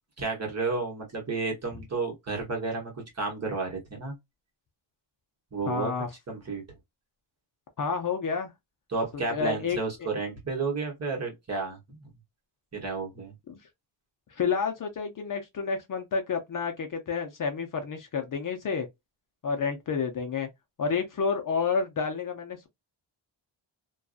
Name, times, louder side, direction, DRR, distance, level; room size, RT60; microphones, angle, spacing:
voice 1, 0.2-4.2 5.5-5.9 6.3-6.6 8.9-12.1 12.7-13.3, right 4 dB, 35° right, 1.0 m, -32 dB
voice 2, 5.7-6.1 7.8-8.5 9.3-10.1 13.5-13.6 14.3-18.9 19.4-20.5 20.8-22.7, left 5 dB, 45° left, 0.5 m, -30 dB
2.5 x 2.3 x 2.4 m
wide cardioid pair, 175°, 48 cm